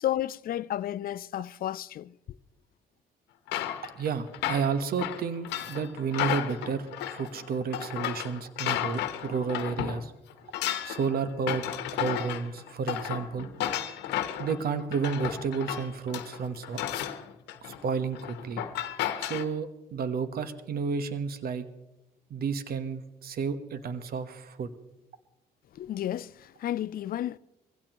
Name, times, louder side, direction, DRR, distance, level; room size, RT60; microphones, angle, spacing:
voice 1, 0.0-2.2 25.7-27.4, left 12 dB, 60° left, 0.5 m, -32 dB
sound 1, 3.5-10.0 10.3-19.4, left 11 dB, 85° left, 1.1 m, -33 dB
voice 2, 3.9-10.1 10.8-11.6 11.9-13.5 14.4-16.8 17.6-18.6 19.2-21.7 22.3-24.7, right 6 dB, 60° right, 1.2 m, -31 dB
22.5 x 16.0 x 3.0 m
supercardioid pair, 60°, 17 cm